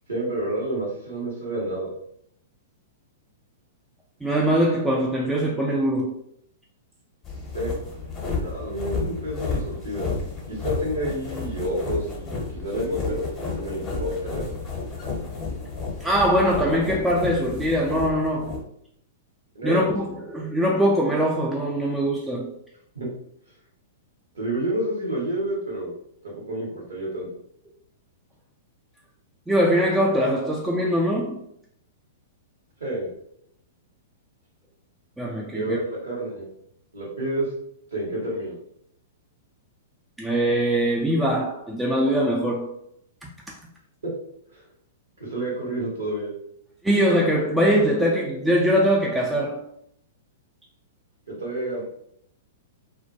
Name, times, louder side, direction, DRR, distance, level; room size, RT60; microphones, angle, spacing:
voice 1, 0.1-1.9 7.5-7.7 8.4-10.1 10.5-14.6 19.5-19.9 22.9-23.1 24.3-25.9 26.2-27.3 32.8-33.1 35.5-36.4 36.9-37.5 37.9-38.6 44.5-44.6 45.2-46.3 51.3-51.8, right 1 dB, 80° right, 0.9 m, -29 dB
voice 2, 4.2-6.2 16.0-18.6 19.6-22.5 29.5-31.4 35.2-35.8 40.2-42.7 43.2-43.5 46.8-49.7, equal, 5° right, 0.3 m, -22 dB
sound 1, 7.2-18.6, left 4 dB, 20° left, 0.7 m, -32 dB
2.2 x 2.1 x 2.7 m
figure-of-eight pair, 105°, 0 cm